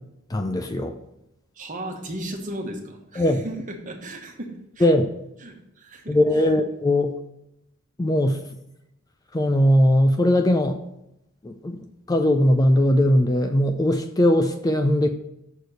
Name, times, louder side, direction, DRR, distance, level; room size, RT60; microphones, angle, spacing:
voice 1, 0.3-0.9 3.2-3.4 4.8-5.1 6.1-7.1 8.0-8.4 9.3-10.8 11.4-11.8 12.1-15.1, left 1 dB, 15° left, 6 dB, 0.4 m, -19 dB
voice 2, 1.5-4.9 5.4-6.2, right 1 dB, 40° right, 2 dB, 1.3 m, -35 dB
6.5 x 4.4 x 6.6 m, 0.83 s
head